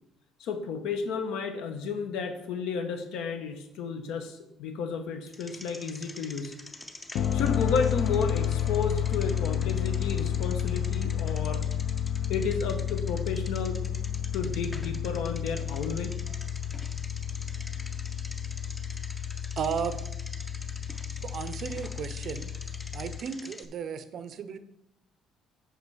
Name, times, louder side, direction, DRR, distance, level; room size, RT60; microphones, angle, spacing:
voice 1, 0.4-6.5 7.3-11.7 12.3-13.8 14.3-16.1, left 5 dB, 80° left, 7 dB, 1.1 m, -32 dB
Bicycle, 5.3-23.7, left 1 dB, 10° left, 0.5 m, -46 dB
sound 1, 7.1-23.2, left 10 dB, 65° left, 0.5 m, -31 dB
voice 2, 19.6-20.0 21.2-22.5 22.9-24.6, right 7 dB, 40° right, 12 dB, 0.5 m, -34 dB
8.3 x 5.7 x 4.8 m, 0.84 s
cardioid pair, 180°, 0 cm